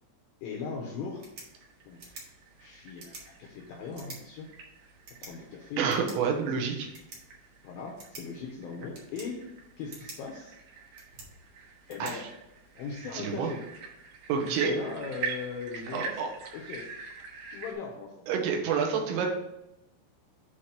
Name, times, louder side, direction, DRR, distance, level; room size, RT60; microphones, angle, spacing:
voice 1, 0.4-1.3 1.9-2.1 2.6-4.5 5.2-5.8 7.6-9.5 9.8-10.6 11.9-12.3 12.8-13.6 14.3-16.2 16.5-16.9 17.5-18.2, left 5 dB, 80° left, -1 dB, 2.2 m, -39 dB
sound 1, 1.0-13.0, right 3 dB, 50° right, 1.6 m, -51 dB
sound 2, 1.3-17.7, right 6 dB, 70° right, 1.9 m, -44 dB
voice 2, 5.8-6.9 12.0-12.3 13.1-13.5 14.3-14.8 15.9-16.3 18.3-19.3, right 6 dB, 90° right, 2 dB, 3.3 m, -28 dB
8.2 x 3.2 x 5.8 m, 0.89 s
omnidirectional pair, 5.2 m